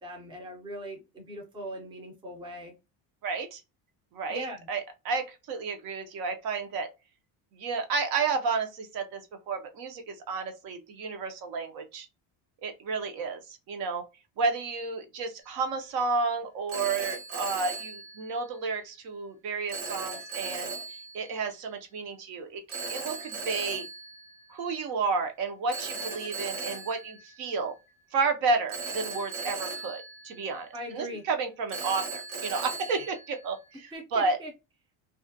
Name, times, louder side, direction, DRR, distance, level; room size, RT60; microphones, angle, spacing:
voice 1, 0.0-2.8 4.3-4.7 30.7-31.2 33.9-34.5, right 1 dB, 10° right, 0.5 m, -40 dB
voice 2, 3.2-3.6 4.1-6.9 7.5-9.2 9.5-12.1 12.6-13.4 13.7-14.0 14.4-23.9 24.5-27.7 28.1-34.4, right 4 dB, 55° right, 0.6 m, -31 dB
Telephone, 15.4-15.8 16.7-18.7 19.7-21.4 22.7-24.9 25.7-28.0 28.7-31.0 31.7-33.9, right 4 dB, 75° right, 1.0 m, -38 dB
2.4 x 2.1 x 2.5 m
cardioid pair, 150°, 43 cm